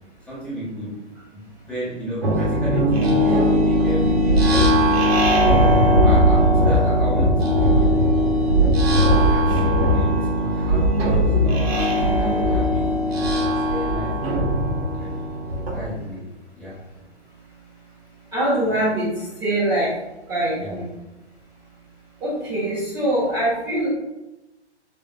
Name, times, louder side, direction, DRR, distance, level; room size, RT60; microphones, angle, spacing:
voice 1, 0.3-1.0 1.3-4.9 5.4-5.7 6.0-8.0 9.3-13.3 13.7-14.5 14.9-15.3 15.7-16.3 16.6-16.8 20.5-20.8, equal, 5° left, -10 dB, 1.4 m, -33 dB
sound 1, 2.2-15.9, equal, 60° right, 1.2 m, -18 dB
voice 2, 18.3-19.1 19.4-19.9 20.3-20.8 22.2-23.9, right 1 dB, 10° right, -10 dB, 1.1 m, -23 dB
5.6 x 3.7 x 2.3 m, 1.0 s
figure-of-eight pair, 125°, 35 cm